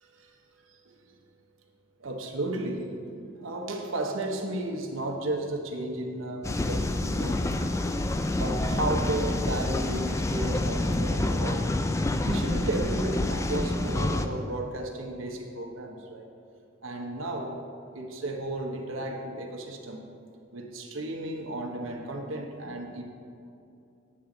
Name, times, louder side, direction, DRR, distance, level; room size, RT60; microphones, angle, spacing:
voice 1, 2.0-2.9 3.4-7.5 8.3-11.7 12.2-16.3 16.8-17.6 17.9-20.1 20.5-23.0, right 2 dB, 80° right, 2 dB, 1.0 m, -33 dB
sound 1, 6.4-14.3, left 2 dB, 15° left, 0.3 m, -27 dB
8.5 x 7.6 x 3.9 m, 2.6 s
head